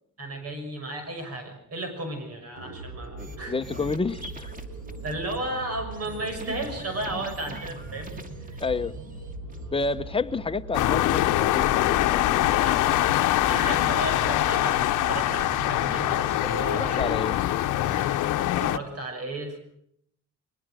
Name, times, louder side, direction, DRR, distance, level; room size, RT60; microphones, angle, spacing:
voice 1, 0.2-3.5 4.2-4.3 5.0-8.2 8.5-8.6 12.6-12.9 13.5-17.0 18.4-19.6, right 2 dB, 55° right, 6 dB, 6.5 m, -34 dB
sound 1, 2.6-17.3, right 2 dB, 90° right, 7.7 m, -41 dB
sound 2, 3.2-3.4 3.6-5.4 5.9-9.9 11.9-12.5 12.7-14.4 14.7-16.6 17.2-18.3, right 2 dB, 30° right, 2.5 m, -45 dB
voice 2, 3.5-4.2 8.6-8.9 9.7-12.7 16.4-17.4, left 4 dB, 20° left, 9 dB, 1.0 m, -30 dB
sound 3, 10.7-18.8, left 15 dB, 90° left, 0.9 m, -23 dB
22.0 x 20.0 x 6.4 m, 0.71 s
cardioid pair, 90°, 30 cm